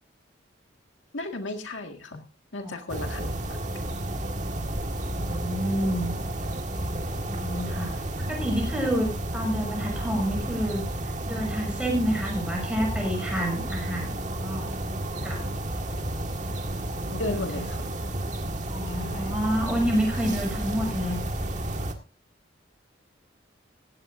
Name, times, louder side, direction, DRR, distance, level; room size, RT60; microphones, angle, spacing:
voice 1, 1.1-2.2 2.5-3.6 17.1-17.9 18.8-19.3, left 2 dB, 85° left, 4 dB, 1.8 m, -35 dB
sound 1, 2.9-21.9, right 1 dB, 40° right, 1.7 m, -31 dB
voice 2, 5.1-6.1 7.3-10.8 11.2-14.1 14.4-14.7 15.2-15.4 17.3-17.7 18.7-21.2, equal, 5° right, 0 dB, 6.8 m, -29 dB
17.0 x 15.5 x 2.6 m, 0.30 s
head